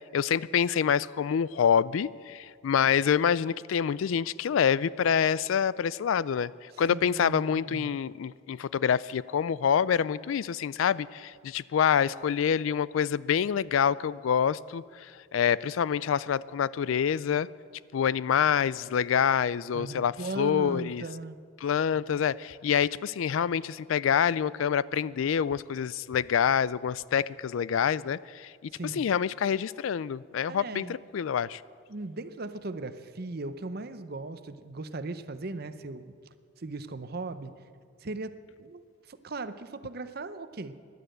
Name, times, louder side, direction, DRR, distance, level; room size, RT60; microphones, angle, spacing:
voice 1, 0.1-17.5 17.9-21.0 21.6-28.7 29.0-30.9 31.1-31.6, left 8 dB, 80° left, 20 dB, 0.4 m, -26 dB
voice 2, 6.9-8.1 19.7-21.4 22.0-22.2 28.7-29.0 30.5-31.0 31.9-36.1 36.6-37.5 38.0-38.8 39.1-40.7, right 2 dB, 50° right, 12 dB, 0.7 m, -38 dB
16.5 x 11.0 x 7.8 m, 2.1 s
head